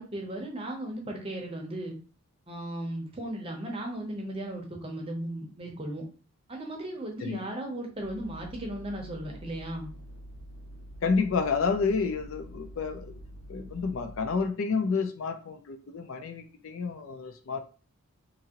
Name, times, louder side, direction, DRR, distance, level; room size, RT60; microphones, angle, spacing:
voice 1, 0.0-2.0 2.5-6.0 6.5-9.9, right 1 dB, 25° right, 0 dB, 0.7 m, -36 dB
sound 1, 7.9-14.5, equal, 90° right, 0.5 m, -46 dB
voice 2, 11.0-13.2 13.5-17.6, left 5 dB, 65° left, 7 dB, 0.4 m, -29 dB
2.7 x 2.6 x 2.8 m, 0.37 s
head